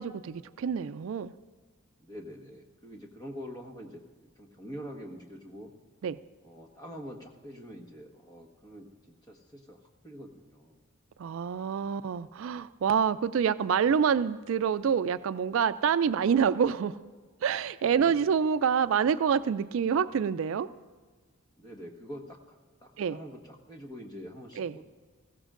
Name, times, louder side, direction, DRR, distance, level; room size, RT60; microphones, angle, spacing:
voice 1, 0.0-1.3 6.0-6.2 11.2-17.0 17.4-20.7 23.0-23.2 24.6-24.7, right 7 dB, 65° right, 14 dB, 0.3 m, -27 dB
voice 2, 2.0-4.0 4.4-5.7 6.4-8.9 9.3-10.8 17.9-18.4 21.6-24.8, equal, 20° left, 1 dB, 1.3 m, -45 dB
21.0 x 16.0 x 2.5 m, 1.5 s
head